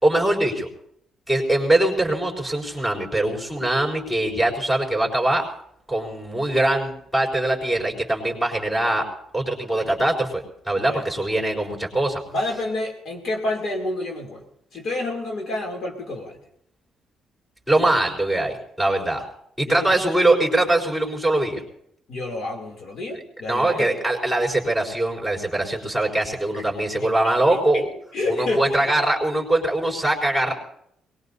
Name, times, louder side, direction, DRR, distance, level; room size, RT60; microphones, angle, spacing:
voice 1, 0.0-0.7 1.3-5.4 5.9-9.0 9.3-12.2 17.7-19.2 19.6-21.6 23.5-27.9 28.3-30.5, right 1 dB, ahead, -2 dB, 4.2 m, -22 dB
voice 2, 12.3-14.4 14.7-16.4 19.6-20.0 22.1-23.9 26.5-26.6 27.0-27.1 27.5-27.6 28.1-28.9, left 2 dB, 60° left, 0 dB, 3.0 m, -29 dB
23.0 x 20.5 x 2.8 m, 0.73 s
cardioid pair, 90°, 0 cm